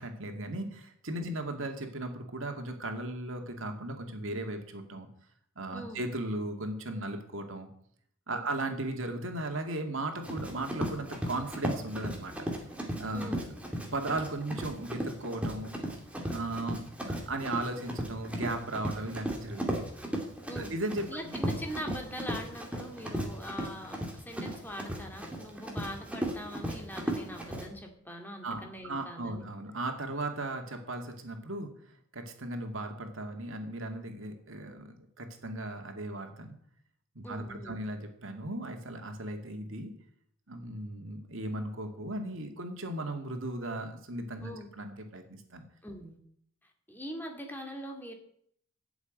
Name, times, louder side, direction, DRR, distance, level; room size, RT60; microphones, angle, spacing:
voice 1, 0.0-5.1 5.6-7.7 8.3-12.3 13.0-13.3 13.9-15.7 16.2-19.9 20.6-21.4 28.4-31.7 32.1-36.5 37.1-39.9 40.5-45.6, right 2 dB, 70° right, 4 dB, 2.3 m, -36 dB
Run, 10.2-27.6, right 1 dB, 5° right, 2.6 m, -36 dB
voice 2, 13.1-13.5 20.5-20.7 21.1-29.5 37.2-37.8 44.4-44.7 45.8-46.2 46.9-48.1, equal, 10° left, 2 dB, 2.3 m, -42 dB
13.0 x 7.2 x 9.6 m, 0.67 s
head